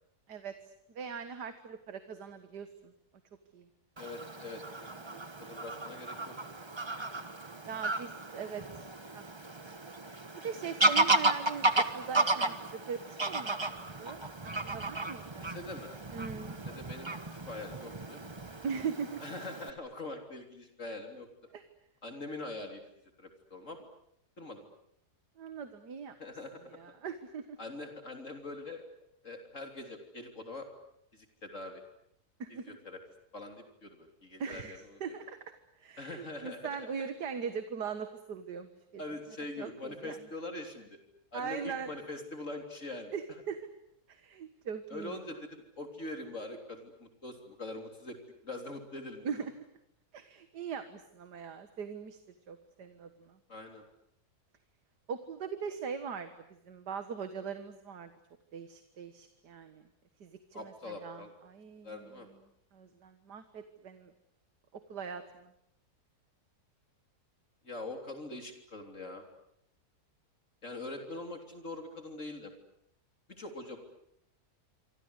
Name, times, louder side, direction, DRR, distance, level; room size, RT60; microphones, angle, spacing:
voice 1, 0.9-2.9 3.5-3.7 7.6-8.9 9.1-9.2 9.6-9.7 10.4-13.0 13.3-14.2 14.6-15.5 16.1-16.6 18.6-19.2 21.5-21.6 25.4-26.1 26.7-27.6 32.4-32.8 34.4-35.4 35.8-39.0 39.6-40.2 41.3-41.9 43.1-43.6 44.1-45.1 49.2-49.5 50.1-52.2 52.5-53.4 55.1-56.3 56.7-58.1 58.5-59.8 60.2-62.2 62.7-64.1 64.7-65.5, right 6 dB, 85° right, 9 dB, 2.1 m, -40 dB
voice 2, 4.0-6.3 15.4-15.9 16.7-18.2 19.2-21.3 22.0-22.8 23.2-23.9 24.4-24.7 26.2-26.8 27.6-28.8 29.2-30.7 31.1-31.8 32.5-33.0 33.3-35.2 36.0-36.8 39.0-41.0 41.3-43.1 44.9-48.2 48.4-49.3 53.5-53.8 60.5-61.3 61.8-62.3 67.6-69.2 70.6-72.5 73.3-73.8, left 2 dB, 50° left, 4 dB, 3.7 m, -43 dB
Fowl / Bird vocalization bird call bird song, 4.0-19.7, right 2 dB, 20° right, 1.2 m, -33 dB
27.0 x 25.5 x 8.2 m, 0.75 s
omnidirectional pair, 1.7 m